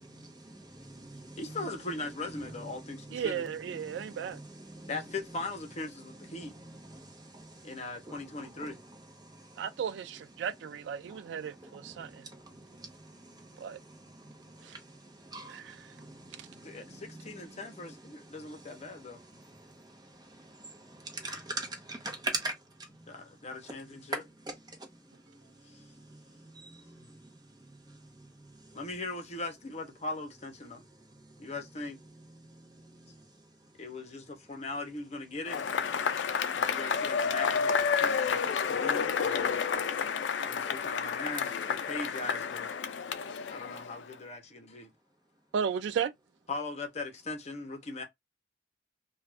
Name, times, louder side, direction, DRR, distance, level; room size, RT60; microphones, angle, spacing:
voice 1, 0.0-1.4 3.8-4.9 6.3-7.8 8.1-8.2 8.6-8.7 9.2-9.6 11.1-11.2 11.5-17.0 18.5-18.7 19.4-22.6 24.1-24.5 25.8-26.2 26.5-27.1 27.9-28.0 32.6-33.2, right 2 dB, 25° right, 0.9 m, -43 dB
voice 2, 1.4-3.4 4.9-6.5 7.6-8.8 16.6-17.9 18.3-19.2 23.1-24.2 25.7-25.8 28.7-30.8 31.4-32.0 33.8-35.6 36.5-39.6 40.4-42.7 43.5-44.9 46.5-48.0, left 3 dB, 40° left, 0.7 m, -39 dB
voice 3, 3.1-4.4 9.6-12.3 13.6-13.8 14.6-14.7 15.5-15.9 16.4-16.5 45.5-46.1, right 7 dB, 70° right, 0.3 m, -35 dB
Cheering / Applause / Crowd, 35.5-44.1, left 6 dB, 75° left, 0.4 m, -30 dB
2.4 x 2.3 x 3.2 m
head